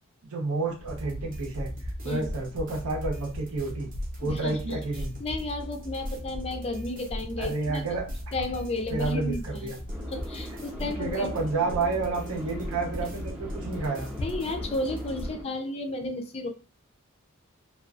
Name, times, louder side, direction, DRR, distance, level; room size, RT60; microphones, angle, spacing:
voice 1, 0.3-1.7 2.0-3.9 4.2-5.1 7.4-8.1 8.9-9.8 10.8-14.1, right 3 dB, 90° right, -1 dB, 0.8 m, -30 dB
sound 1, 0.7-15.3, left 1 dB, 85° left, 0.6 m, -39 dB
sound 2, 0.9-15.3, equal, 40° right, 0.6 m, -41 dB
voice 2, 4.2-4.6 5.2-8.0 8.3-9.7 10.1-11.3 14.2-16.5, left 2 dB, 30° left, 5 dB, 0.4 m, -33 dB
sound 3, 9.9-15.4, left 1 dB, 10° right, 0.8 m, -41 dB
2.4 x 2.2 x 2.4 m, 0.34 s
head